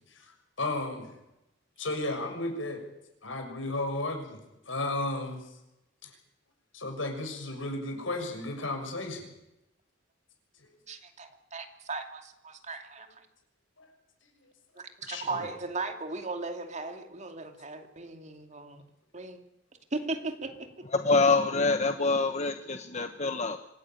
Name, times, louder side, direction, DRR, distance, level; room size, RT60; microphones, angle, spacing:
voice 1, 0.1-1.1 1.8-2.8 3.2-4.4 4.7-5.4 6.0-6.1 6.7-9.3 13.8-13.9 15.1-15.5, left 2 dB, 85° left, 4 dB, 6.5 m, -34 dB
voice 2, 10.9-13.2 14.8-18.8 19.1-19.4 19.9-20.7, right 3 dB, 40° right, 5 dB, 2.6 m, -37 dB
voice 3, 20.9-23.6, left 3 dB, 35° left, 7 dB, 1.2 m, -25 dB
25.5 x 17.5 x 9.2 m, 0.88 s
head